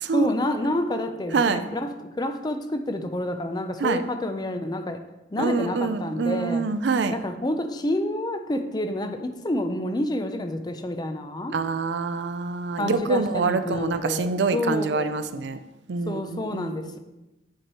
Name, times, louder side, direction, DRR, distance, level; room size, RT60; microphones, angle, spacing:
voice 1, 0.1-5.0 5.3-6.7 7.1-11.5 12.8-15.1 16.1-17.0, left 1 dB, 25° left, 7 dB, 0.5 m, -28 dB
voice 2, 5.4-7.1 11.5-15.6 15.9-16.7, right 4 dB, 75° right, 10 dB, 0.4 m, -25 dB
9.0 x 4.7 x 3.0 m, 0.99 s
head